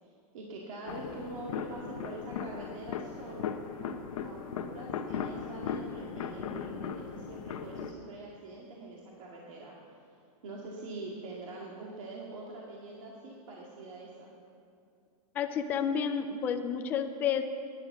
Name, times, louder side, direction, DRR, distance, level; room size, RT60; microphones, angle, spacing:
voice 1, 0.0-3.4 3.8-10.0 10.4-14.3, right 2 dB, 55° right, -3 dB, 2.1 m, -44 dB
sound 1, 0.9-7.9, left 7 dB, 60° left, 1.1 m, -38 dB
voice 2, 15.3-17.4, left 7 dB, 10° left, 7 dB, 0.3 m, -30 dB
13.0 x 10.5 x 7.4 m, 2.5 s
supercardioid pair, 175°, 20 cm